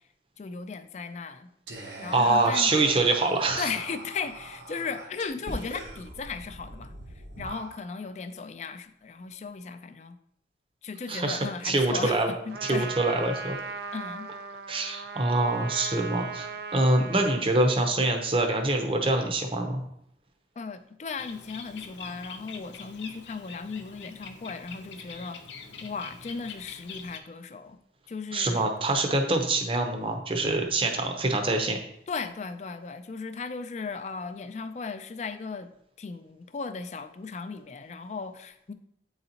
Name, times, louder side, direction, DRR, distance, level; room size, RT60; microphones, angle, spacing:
voice 1, 0.4-1.5 2.0-2.9 3.6-6.9 7.4-10.2 10.8-12.9 13.9-14.3 20.6-25.4 25.8-27.8 28.1-28.7 31.0-31.1 32.1-35.7 36.0-38.7, left 5 dB, 40° left, 10 dB, 0.3 m, -36 dB
Whispering, 1.7-8.1, right 2 dB, 90° right, 0.9 m, -42 dB
voice 2, 2.1-3.7 11.1-12.3 12.6-13.6 14.7-19.8 28.3-31.8, right 2 dB, 30° right, 4 dB, 0.6 m, -25 dB
Trumpet, 12.5-17.5, right 5 dB, 65° right, 0.4 m, -38 dB
Bird, 21.2-27.2, left 5 dB, 85° left, 0.7 m, -44 dB
8.6 x 3.9 x 2.8 m, 0.74 s
head